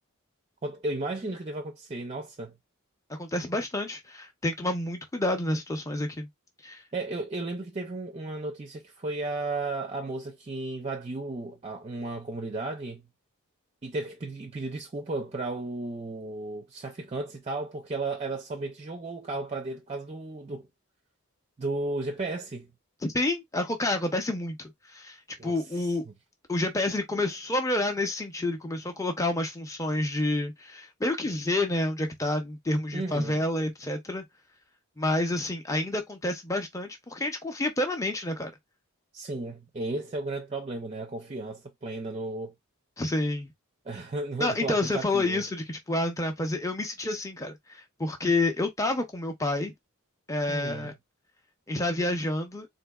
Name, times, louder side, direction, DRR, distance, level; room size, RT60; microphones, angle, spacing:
voice 1, 0.6-2.6 6.9-13.1 13.8-20.7 21.6-22.7 25.4-25.6 26.1-26.2 32.9-33.4 39.1-42.5 43.9-45.4 50.5-50.9, right 2 dB, 30° right, 0.4 m, -34 dB
voice 2, 3.1-6.3 6.6-6.8 23.0-25.2 25.4-26.0 26.5-34.2 35.0-38.5 43.0-43.5 44.4-49.7 50.3-50.9 51.7-52.7, left 2 dB, 15° left, 0.7 m, -29 dB
3.9 x 2.6 x 2.3 m
head